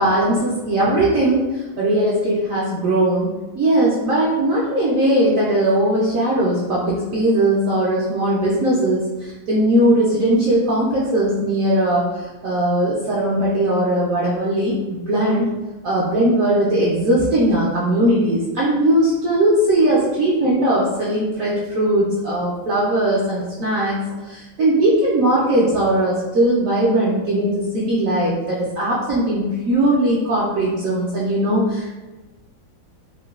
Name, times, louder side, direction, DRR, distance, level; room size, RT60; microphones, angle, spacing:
voice 1, 0.0-3.3 3.5-15.5 15.8-24.0 24.2-31.9, right 1 dB, 70° right, -7 dB, 0.7 m, -19 dB
3.8 x 2.1 x 2.3 m, 1.2 s
omnidirectional pair, 1.9 m